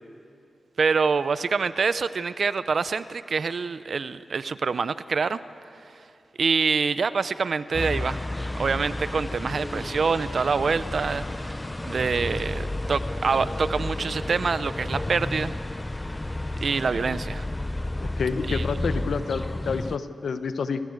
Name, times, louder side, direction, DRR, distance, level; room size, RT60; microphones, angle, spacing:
voice 1, 0.8-5.4 6.4-8.2 8.5-11.6 11.9-15.5 16.6-17.5 18.5-18.6, right 5 dB, 65° right, 14 dB, 0.7 m, -26 dB
sound 1, 7.7-20.0, left 1 dB, 20° left, 0.8 m, -31 dB
voice 2, 18.2-20.8, left 5 dB, 80° left, 10 dB, 1.0 m, -28 dB
29.0 x 16.0 x 8.1 m, 2.6 s
cardioid pair, 60°, 0 cm